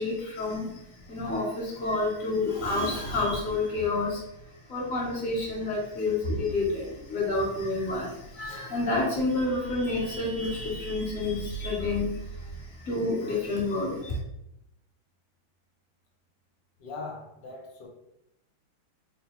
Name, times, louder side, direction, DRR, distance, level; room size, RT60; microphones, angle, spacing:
voice 1, 0.0-4.2 4.7-14.2, left 2 dB, 45° left, -3 dB, 1.5 m, -29 dB
voice 2, 16.8-17.9, left 3 dB, 70° left, 0 dB, 1.3 m, -40 dB
4.2 x 2.1 x 4.2 m, 0.84 s
omnidirectional pair, 2.2 m